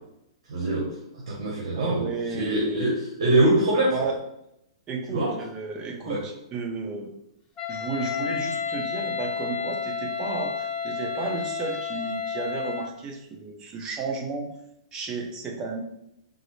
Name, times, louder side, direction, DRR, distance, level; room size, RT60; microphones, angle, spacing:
voice 1, 0.5-1.0 1.3-3.9 5.1-5.3 6.0-6.2, right 1 dB, 70° right, -3 dB, 0.9 m, -24 dB
voice 2, 1.8-2.9 3.9-4.2 4.9-7.1 7.7-14.5 14.9-15.8, right 4 dB, 25° right, 1 dB, 0.6 m, -33 dB
Wind instrument woodwind instrument, 7.6-12.9, left 6 dB, 20° left, 0.6 m, -31 dB
3.6 x 2.0 x 3.1 m, 0.80 s
hypercardioid pair, 140°, 3 cm